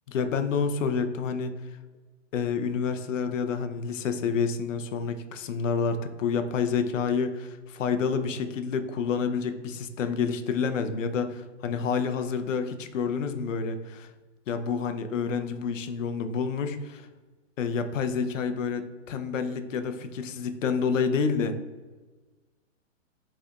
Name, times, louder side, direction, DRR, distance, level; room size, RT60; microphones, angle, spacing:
voice 1, 0.1-1.5 2.3-14.1 14.5-17.1 17.6-21.5, left 5 dB, 75° left, 8 dB, 0.7 m, -28 dB
6.4 x 3.3 x 2.4 m, 1.3 s
hypercardioid pair, 170°, 38 cm